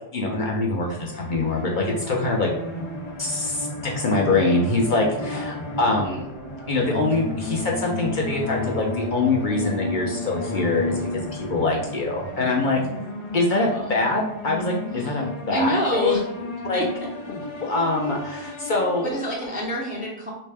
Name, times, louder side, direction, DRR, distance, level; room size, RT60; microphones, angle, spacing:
voice 1, 0.1-2.5 3.2-6.2 6.7-12.8 13.3-16.2 16.6-16.8 17.3-19.1, left 2 dB, 55° left, -1 dB, 0.6 m, -24 dB
sound 1, 0.8-19.6, left 2 dB, 80° left, 1.1 m, -33 dB
voice 2, 5.2-5.6 13.7-14.1 15.0-15.2 15.5-16.2 16.7-16.8 19.0-20.3, equal, 10° right, -3 dB, 0.4 m, -28 dB
3.2 x 2.6 x 3.3 m, 0.82 s
omnidirectional pair, 1.1 m